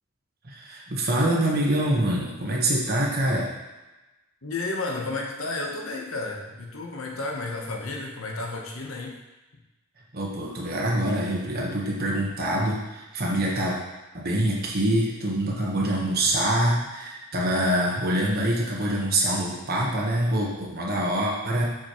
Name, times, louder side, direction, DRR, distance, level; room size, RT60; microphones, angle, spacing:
voice 1, 0.4-3.5 10.1-13.8 14.1-21.7, right 1 dB, 50° right, -3 dB, 1.3 m, -25 dB
voice 2, 4.4-9.2, left 2 dB, 85° left, 1 dB, 1.1 m, -32 dB
7.2 x 5.0 x 3.1 m, 1.1 s
head